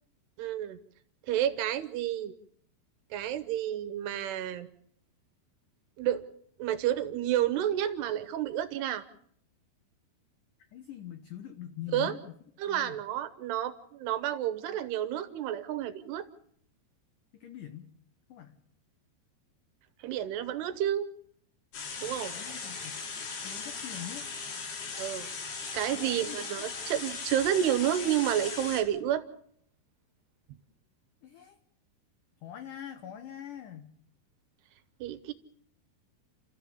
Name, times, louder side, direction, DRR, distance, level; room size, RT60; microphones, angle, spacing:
voice 1, 0.4-0.8 1.3-2.3 3.1-4.7 6.0-6.3 6.6-9.0 11.9-12.1 12.6-16.3 20.0-21.1 22.0-22.3 25.0-29.2 35.0-35.3, right 11 dB, 75° right, 12 dB, 2.8 m, -30 dB
voice 2, 10.7-12.4 12.7-13.0 17.3-17.9 18.3-18.6 22.3-23.0 23.4-24.3 25.9-26.7 31.2-31.6 32.4-33.9, left 10 dB, 85° left, 9 dB, 1.8 m, -44 dB
sound 1, 21.7-28.8, left 4 dB, 65° left, 4.7 m, -38 dB
30.0 x 13.5 x 7.1 m, 0.67 s
omnidirectional pair, 5.1 m